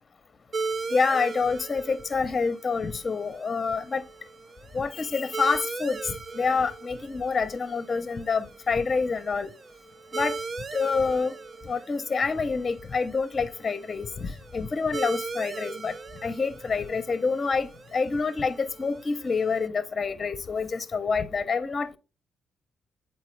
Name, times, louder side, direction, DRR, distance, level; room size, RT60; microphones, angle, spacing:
sound 1, 0.5-19.7, right 4 dB, 40° right, 0.4 m, -39 dB
voice 1, 0.9-4.0 4.7-9.5 10.1-10.4 10.7-11.3 11.7-15.9 16.2-22.0, left 4 dB, 35° left, 0.6 m, -27 dB
8.2 x 4.5 x 3.2 m
cardioid pair, 90°, 0 cm